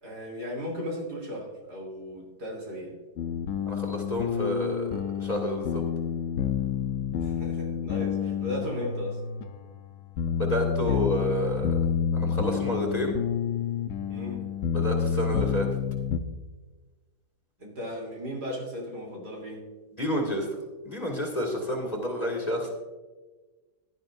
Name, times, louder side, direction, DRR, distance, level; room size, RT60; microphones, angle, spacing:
voice 1, 0.0-3.0 7.2-9.2 10.9-11.0 14.1-14.5 17.6-19.7, left 1 dB, 70° right, -1 dB, 3.7 m, -36 dB
sound 1, 3.2-16.2, left 8 dB, 60° left, 0.9 m, -29 dB
voice 2, 3.7-5.8 10.4-11.8 12.1-13.1 14.7-15.7 20.0-20.4 20.8-22.7, equal, 20° left, 0 dB, 2.1 m, -29 dB
16.5 x 11.5 x 2.6 m, 1.2 s
omnidirectional pair, 1.8 m